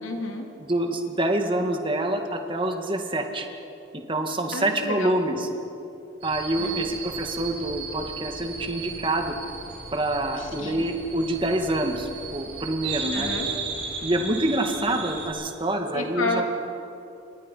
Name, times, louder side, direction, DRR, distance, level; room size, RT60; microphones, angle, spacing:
voice 1, 0.0-0.5 4.5-5.2 6.6-6.9 10.4-10.9 13.1-13.5 15.9-16.4, left 2 dB, 90° left, 1 dB, 3.4 m, -31 dB
voice 2, 0.6-3.5 3.9-5.5 6.2-9.4 9.9-13.3 14.0-16.4, right 1 dB, 25° right, 4 dB, 2.1 m, -26 dB
sound 1, 6.2-15.3, right 5 dB, 60° right, 7.7 m, -35 dB
29.5 x 25.5 x 5.7 m, 2.9 s
head